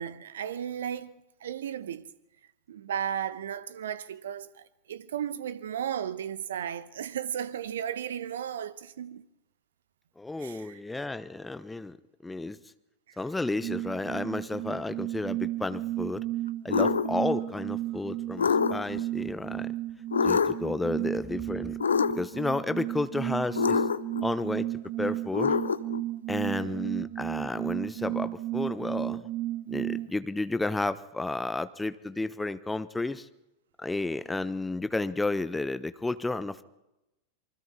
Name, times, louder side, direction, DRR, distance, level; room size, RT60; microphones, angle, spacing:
voice 1, 0.0-2.0 2.7-9.2 10.4-10.8 13.1-13.2 26.4-26.9, right 9 dB, 60° right, 1.1 m, -35 dB
voice 2, 10.2-12.0 12.2-12.6 13.2-16.2 16.6-19.7 20.2-21.8 22.1-23.8 24.2-24.7 25.0-25.5 26.3-29.2 29.7-33.3 33.8-36.6, left 2 dB, 10° left, 1.0 m, -32 dB
sound 1, 13.6-30.1, right 15 dB, 40° right, 0.8 m, -34 dB
sound 2, 16.7-17.1 18.4-19.0 20.1-20.7 21.8-22.4 23.6-24.2 25.3-26.0, left 6 dB, 70° left, 0.8 m, -25 dB
27.0 x 24.5 x 4.3 m
figure-of-eight pair, 90°, 0 cm